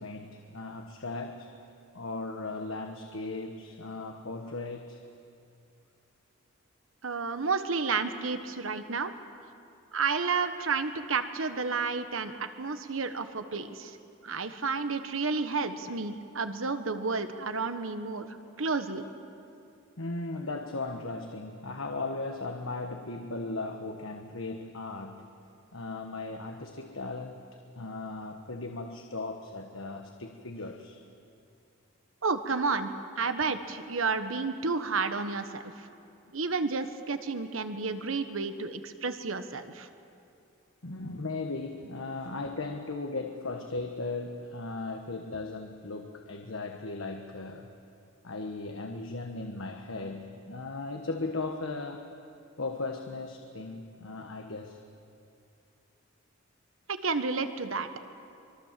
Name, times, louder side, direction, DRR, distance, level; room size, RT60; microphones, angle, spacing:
voice 1, 0.0-1.6 1.9-5.0 20.0-25.3 25.7-27.4 27.8-31.0 40.8-47.7 48.2-52.1 52.6-54.8, left 3 dB, 80° left, 4 dB, 1.3 m, -37 dB
voice 2, 7.0-9.1 9.9-14.0 14.2-18.3 18.6-19.1 32.2-32.9 33.2-35.6 36.3-39.9 57.0-57.9, right 4 dB, 85° right, 9 dB, 1.3 m, -31 dB
25.0 x 23.5 x 7.5 m, 2.6 s
head